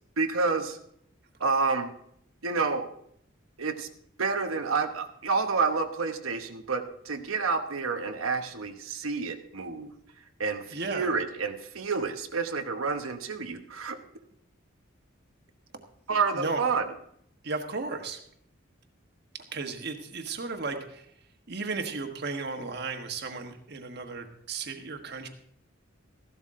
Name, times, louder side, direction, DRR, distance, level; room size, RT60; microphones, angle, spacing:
voice 1, 0.2-0.8 1.4-1.9 2.4-2.9 3.6-3.9 4.2-9.9 10.4-14.0 16.1-16.9, right 4 dB, 85° right, 6 dB, 1.0 m, -29 dB
voice 2, 10.7-11.1 16.3-16.6 17.4-18.2 19.3-21.1 21.5-25.3, right 3 dB, 50° right, 5 dB, 1.4 m, -34 dB
14.5 x 12.0 x 3.7 m, 0.70 s
head